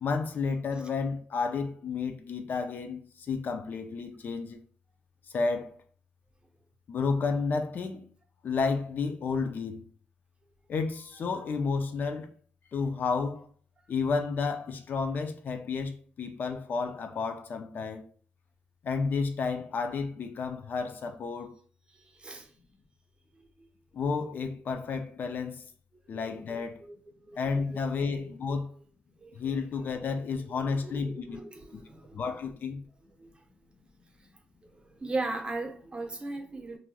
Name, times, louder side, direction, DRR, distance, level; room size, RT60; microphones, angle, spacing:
voice 1, 0.0-4.6 5.3-5.8 6.9-8.1 8.4-9.8 10.7-12.3 12.7-13.5 13.9-18.0 18.8-21.6 23.9-25.6 26.1-26.8 27.4-28.7 29.4-31.4 31.7-31.8 32.1-32.8, left 4 dB, 60° left, 0.4 m, -31 dB
voice 2, 26.2-27.0 27.3-27.4 28.1-28.3 29.2-29.3 30.7-32.2 33.2-33.3 35.0-36.8, right 2 dB, 30° right, 0.6 m, -37 dB
3.0 x 2.5 x 2.3 m
cardioid pair, 80°, 4 cm